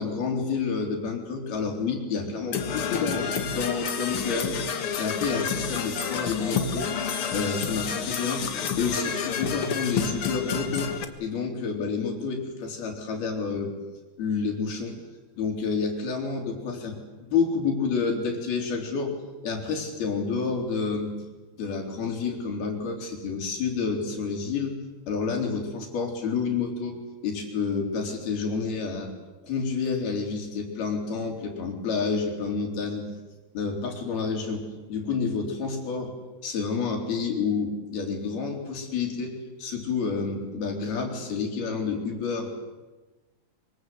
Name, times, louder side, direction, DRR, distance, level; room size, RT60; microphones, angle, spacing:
voice 1, 0.0-4.6 5.0-6.9 7.3-8.4 8.8-10.9 11.2-13.7 14.2-15.0 15.4-17.0 17.3-19.1 19.4-21.1 21.6-24.8 25.1-27.0 27.2-29.1 29.4-33.1 33.5-36.1 36.4-42.5, left 5 dB, 70° left, 2 dB, 5.7 m, -29 dB
Percussion / Brass instrument, 2.5-11.0, left 6 dB, 50° left, 1.8 m, -29 dB
25.0 x 25.0 x 7.9 m, 1.2 s
omnidirectional pair, 4.5 m